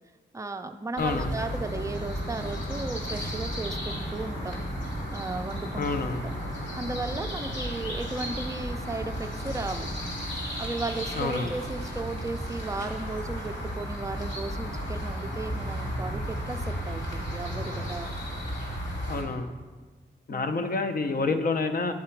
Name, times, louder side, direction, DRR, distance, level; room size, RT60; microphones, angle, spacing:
voice 1, 0.3-4.6 5.1-6.2 6.5-9.9 10.6-18.1 20.3-20.5, right 3 dB, 15° right, 7 dB, 0.4 m, -35 dB
sound 1, 1.0-19.2, equal, 75° left, 2.2 m, -34 dB
voice 2, 1.0-1.3 5.7-6.2 11.2-11.5 19.1-19.5 20.3-21.9, left 3 dB, 50° left, 8 dB, 0.6 m, -28 dB
9.6 x 3.9 x 4.5 m, 1.4 s
wide cardioid pair, 110°, 19 cm